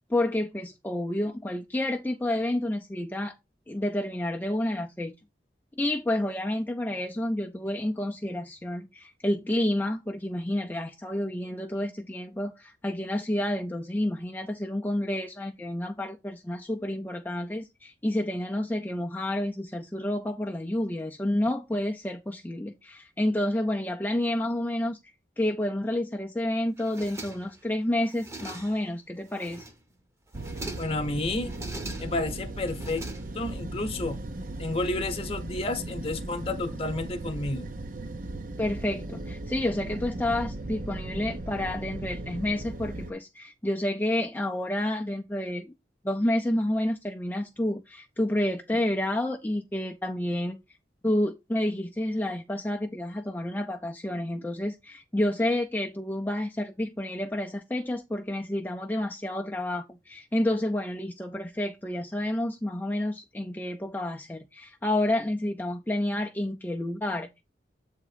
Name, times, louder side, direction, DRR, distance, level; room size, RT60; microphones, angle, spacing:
voice 1, 0.1-3.4 3.7-5.1 5.8-25.0 25.4-29.7 38.6-45.7 46.0-50.6 51.0-67.4, left 1 dB, 10° left, 0.4 m, -29 dB
sound 1, 26.8-27.7 28.0-28.9 29.3-29.9 30.3-31.0 31.4-32.3 32.7-33.6, right 2 dB, 15° right, 0.8 m, -42 dB
sound 2, 30.3-43.1, right 2 dB, 50° right, 0.7 m, -37 dB
voice 2, 30.8-31.5 32.0-33.1 33.3-34.2 34.6-37.7, left 2 dB, 35° left, 0.9 m, -31 dB
7.6 x 3.6 x 4.9 m
head